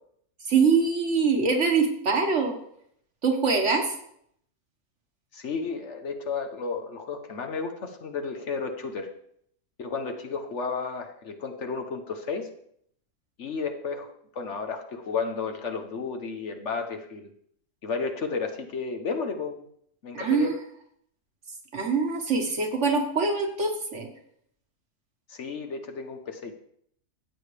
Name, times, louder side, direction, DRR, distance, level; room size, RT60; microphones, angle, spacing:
voice 1, 0.5-2.5 3.2-3.9 20.1-20.5 21.7-24.1, right 4 dB, 55° right, 3 dB, 1.7 m, -24 dB
voice 2, 5.3-9.1 9.8-12.5 13.4-17.3 17.8-19.6 20.0-20.5 25.3-26.5, left 5 dB, 55° left, 5 dB, 1.2 m, -32 dB
14.0 x 8.3 x 3.3 m, 0.68 s
omnidirectional pair, 1.5 m